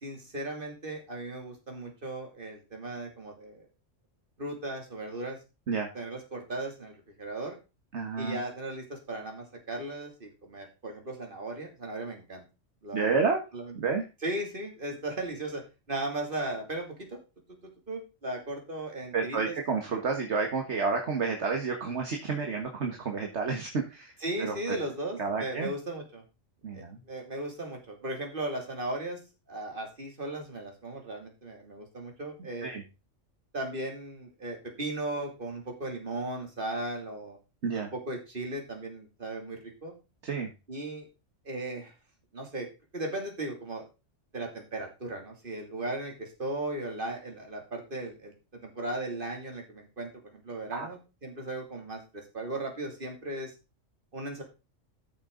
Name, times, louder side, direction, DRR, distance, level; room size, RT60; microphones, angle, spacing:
voice 1, 0.0-3.7 4.4-5.4 5.9-7.6 8.2-12.4 12.8-13.3 13.5-13.7 14.2-15.6 15.9-17.2 17.5-19.6 24.2-26.2 26.7-29.2 29.5-32.7 33.5-37.4 37.9-39.9 40.7-41.1 41.4-41.9 42.3-42.7 42.9-43.8 44.3-53.5 54.1-54.4, right 2 dB, 45° right, 2 dB, 3.0 m, -37 dB
voice 2, 7.9-8.4 12.9-13.4 13.7-14.0 19.1-24.1 24.4-24.5 25.2-25.7 26.6-27.0 32.6-32.8 37.6-37.9 40.2-40.5 50.7-50.9, right 4 dB, 60° right, 3 dB, 1.8 m, -30 dB
13.5 x 6.6 x 3.9 m, 0.29 s
omnidirectional pair, 1.3 m